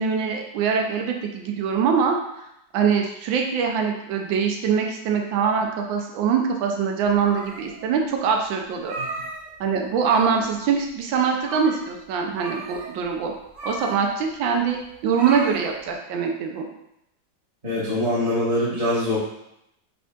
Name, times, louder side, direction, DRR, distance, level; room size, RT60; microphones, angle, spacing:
voice 1, 0.0-2.4 2.7-8.9 9.6-13.3 13.6-16.7, right 6 dB, 90° right, 2 dB, 1.4 m, -23 dB
sound 1, 7.0-7.9 8.3-8.4 8.7-9.7 9.9-10.6 10.9-11.0 11.4-11.9 12.3-15.9, right 2 dB, 55° right, 0.9 m, -35 dB
voice 2, 17.6-19.2, left 1 dB, 20° right, -11 dB, 1.4 m, -23 dB
6.0 x 3.5 x 2.4 m, 0.81 s
omnidirectional pair, 2.0 m